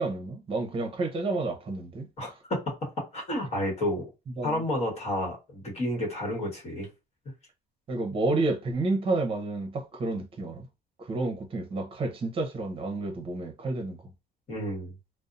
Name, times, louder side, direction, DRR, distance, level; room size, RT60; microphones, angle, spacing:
voice 1, 0.0-2.1 4.4-4.6 7.9-10.7 11.0-14.0, right 2 dB, 35° right, 0.8 m, -30 dB
voice 2, 2.2-2.6 3.1-4.1 4.4-6.9 14.5-14.9, left 1 dB, 40° left, 1.2 m, -30 dB
2.6 x 2.1 x 2.5 m
cardioid pair, 110°, 17 cm